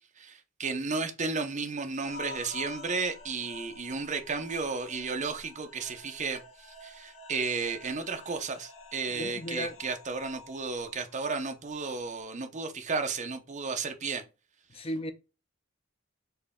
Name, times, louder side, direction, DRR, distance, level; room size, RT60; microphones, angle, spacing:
voice 1, 0.2-14.2 14.7-14.8, right 4 dB, 35° right, 0.7 m, -33 dB
sound 1, 2.0-12.0, left 3 dB, 70° left, 1.4 m, -49 dB
voice 2, 9.1-9.8 14.7-15.1, left 1 dB, 30° left, 0.5 m, -35 dB
4.6 x 3.1 x 3.5 m
head